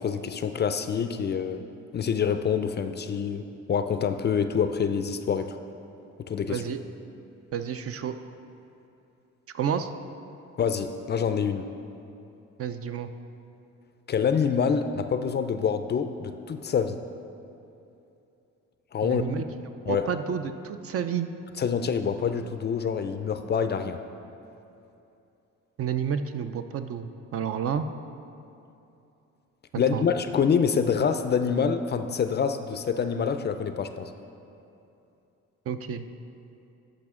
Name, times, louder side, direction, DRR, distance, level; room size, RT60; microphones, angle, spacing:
voice 1, 0.0-1.6 1.9-5.6 6.3-6.6 10.6-11.7 14.1-17.0 18.9-19.2 19.9-20.1 21.6-24.0 29.8-34.1, left 6 dB, 35° left, 9 dB, 0.4 m, -26 dB
voice 2, 6.5-6.8 7.5-8.1 9.5-9.9 12.6-13.1 19.0-19.4 19.9-21.3 25.8-27.9 29.9-30.1 35.7-36.0, right 8 dB, 50° right, 9 dB, 0.5 m, -30 dB
12.0 x 5.0 x 3.7 m, 2.8 s
cardioid pair, 90°, 30 cm